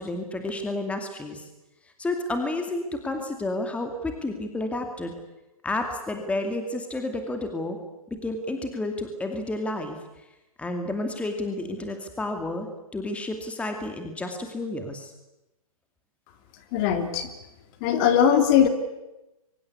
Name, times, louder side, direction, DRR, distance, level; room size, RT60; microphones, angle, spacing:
voice 1, 0.0-1.5 2.0-5.1 5.6-7.8 8.2-10.0 10.6-15.1, left 2 dB, 5° left, 5 dB, 2.4 m, -31 dB
voice 2, 16.7-17.3 17.8-18.7, left 8 dB, 40° left, 8 dB, 3.1 m, -20 dB
25.0 x 24.0 x 8.3 m, 0.99 s
hypercardioid pair, 130°, 19 cm